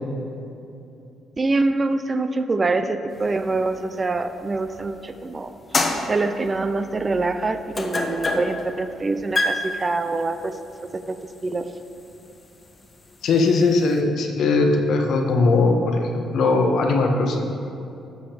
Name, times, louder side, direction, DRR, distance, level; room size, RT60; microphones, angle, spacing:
voice 1, 1.4-5.5 6.1-10.5 10.9-11.2 11.4-11.7, right 3 dB, 30° right, 9 dB, 0.5 m, -25 dB
sound 1, 3.2-5.1 5.5-14.0, left 2 dB, 30° left, 1.0 m, -29 dB
voice 2, 13.2-17.5, left 3 dB, 70° left, 2 dB, 1.1 m, -19 dB
11.5 x 7.0 x 3.4 m, 2.8 s
cardioid pair, 90°, 0 cm